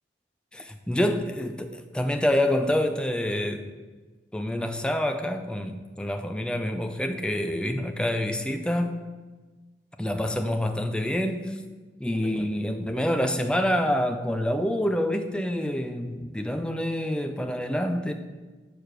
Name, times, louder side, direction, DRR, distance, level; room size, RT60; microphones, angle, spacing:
voice 1, 0.5-3.6 4.3-9.0 10.0-11.6 12.0-18.1, left 1 dB, 5° left, 6 dB, 0.4 m, -27 dB
6.7 x 4.8 x 6.0 m, 1.3 s
head